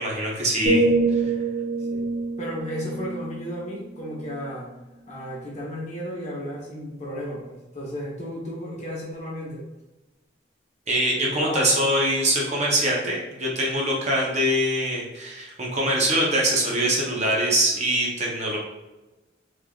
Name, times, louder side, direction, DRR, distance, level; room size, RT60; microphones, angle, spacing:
voice 1, 0.0-0.8 10.9-18.6, right 1 dB, 40° right, -3 dB, 0.8 m, -23 dB
sound 1, 0.6-4.5 5.0-5.3, right 3 dB, 80° right, 1.1 m, -26 dB
voice 2, 1.0-1.3 1.8-2.1 2.4-4.7 5.0-9.6 11.2-11.8, equal, 40° left, -4 dB, 1.0 m, -34 dB
3.6 x 3.3 x 2.4 m, 1.1 s
head